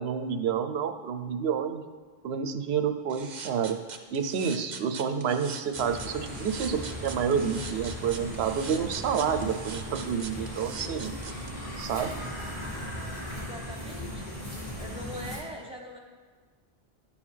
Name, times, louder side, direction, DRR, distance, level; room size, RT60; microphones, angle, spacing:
voice 1, 0.0-1.8 2.2-3.8 4.1-11.1 11.8-12.3, right 7 dB, 80° right, 8 dB, 0.8 m, -29 dB
sound 1, 3.1-11.5, right 6 dB, 50° right, 0.7 m, -42 dB
sound 2, 5.7-15.4, equal, 40° left, 2.7 m, -37 dB
voice 2, 10.6-11.4 13.4-14.4 14.8-16.0, equal, 5° right, 0 dB, 1.0 m, -43 dB
10.5 x 7.2 x 3.3 m, 1.5 s
omnidirectional pair, 1.1 m